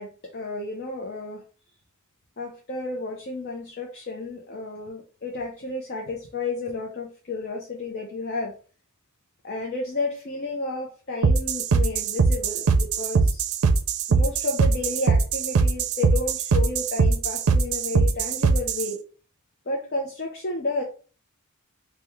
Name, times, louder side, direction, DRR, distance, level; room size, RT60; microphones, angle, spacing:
voice 1, 0.0-1.4 2.4-8.6 9.4-13.4 14.1-19.0 19.7-20.8, left 2 dB, 50° left, 0 dB, 0.6 m, -31 dB
sound 1, 11.2-18.9, right 4 dB, 85° right, 0.4 m, -21 dB
3.5 x 2.2 x 3.0 m, 0.38 s
head